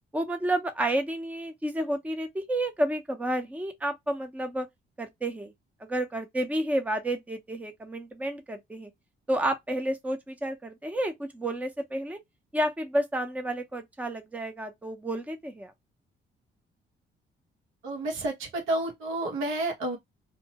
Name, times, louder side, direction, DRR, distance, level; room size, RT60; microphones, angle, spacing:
voice 1, 0.1-4.7 5.0-5.5 5.8-8.9 9.3-12.2 12.5-15.7, right 1 dB, 5° right, 0.6 m, -30 dB
voice 2, 17.8-20.0, right 1 dB, 85° right, 1.1 m, -30 dB
2.7 x 2.0 x 2.8 m
cardioid pair, 90°, 20 cm